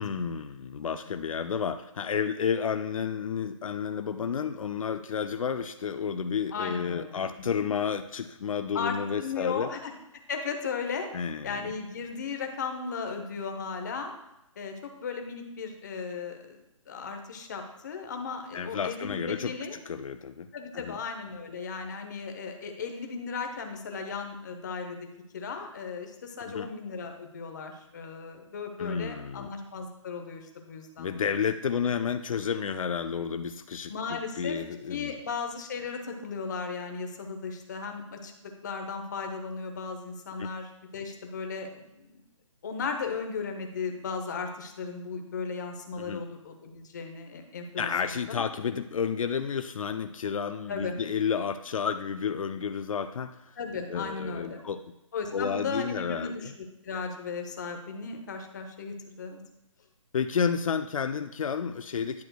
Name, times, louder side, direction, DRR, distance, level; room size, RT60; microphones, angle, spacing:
voice 1, 0.0-9.7 11.1-11.7 18.5-19.5 19.9-20.5 20.7-21.0 26.5-26.7 28.8-29.5 31.0-35.2 40.4-40.5 46.0-46.2 47.8-53.6 53.9-54.8 55.3-56.5 60.1-62.2, left 6 dB, 80° left, 9 dB, 0.4 m, -31 dB
voice 2, 0.8-1.1 6.5-7.2 7.6-7.7 8.7-9.9 10.3-11.1 11.4-14.1 14.6-16.6 16.9-19.8 20.5-25.1 25.3-31.3 33.9-34.6 34.9-42.2 42.6-48.4 50.7-50.9 53.6-54.6 55.1-56.5 56.8-59.4, left 5 dB, 35° left, 4 dB, 0.9 m, -36 dB
10.5 x 6.1 x 2.3 m, 0.88 s
hypercardioid pair, 170°, 17 cm